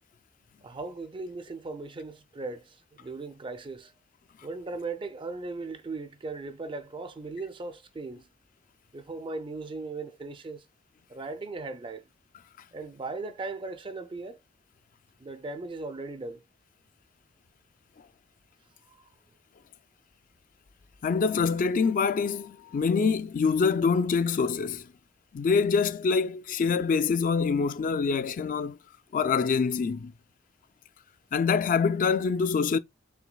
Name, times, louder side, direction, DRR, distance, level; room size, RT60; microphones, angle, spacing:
voice 1, 0.6-3.9 4.4-8.3 8.9-10.7 11.1-12.1 12.7-14.4 15.2-16.4 18.9-19.1, right 3 dB, 25° right, 0.4 m, -38 dB
voice 2, 21.0-24.9 25.3-28.8 29.1-30.1 31.3-32.8, left 5 dB, 45° left, 0.3 m, -25 dB
6.0 x 3.3 x 2.2 m
head